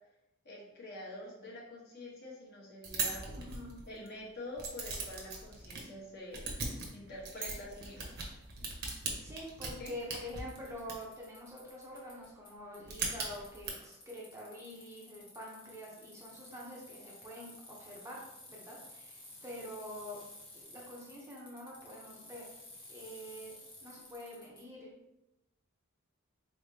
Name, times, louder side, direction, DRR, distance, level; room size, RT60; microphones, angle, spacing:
voice 1, 0.4-3.3 3.9-6.5 6.9-8.2 9.8-9.9, left 1 dB, 45° left, -5 dB, 1.1 m, -46 dB
sound 1, 2.8-4.1 4.6-5.8 6.3-11.0 12.8-13.7, right 4 dB, 45° right, 0.8 m, -39 dB
voice 2, 3.4-3.7 9.2-18.2 18.5-20.2 20.5-22.5 22.9-24.9, equal, 15° right, -4 dB, 0.6 m, -46 dB
Bicycle, 9.0-9.1 10.0-10.1 10.3-12.5 12.7-24.6, left 2 dB, 25° left, 1.1 m, -54 dB
4.1 x 3.4 x 2.7 m, 0.93 s
head